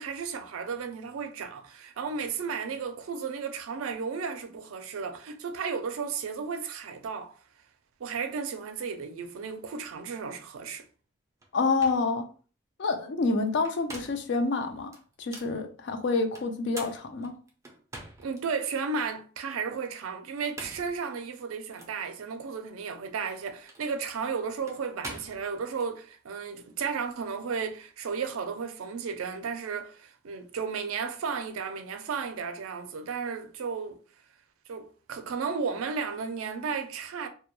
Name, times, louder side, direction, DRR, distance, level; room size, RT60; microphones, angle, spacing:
voice 1, 0.0-7.4 8.0-10.8 18.2-34.0 34.7-37.3, right 5 dB, 85° right, 0.4 m, -34 dB
sound 1, 11.4-11.5 11.8-12.1 13.5-14.3 14.9-15.6 16.3-18.4 18.9-19.0 20.3-21.0 21.8-21.9 23.1-25.9, right 2 dB, 15° right, 0.3 m, -44 dB
voice 2, 11.5-12.3 12.8-14.9 15.2-17.3, left 3 dB, 55° left, 0.4 m, -28 dB
2.2 x 2.1 x 3.0 m
head